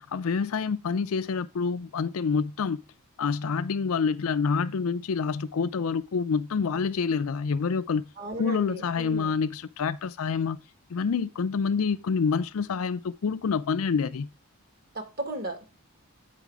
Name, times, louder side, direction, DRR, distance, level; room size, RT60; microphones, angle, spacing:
voice 1, 0.0-2.8 3.2-8.0 8.4-10.6 10.9-14.3, left 5 dB, 70° left, 0.4 m, -27 dB
voice 2, 8.2-9.3 14.9-15.6, right 1 dB, 45° right, 2.0 m, -35 dB
8.3 x 5.2 x 4.7 m
head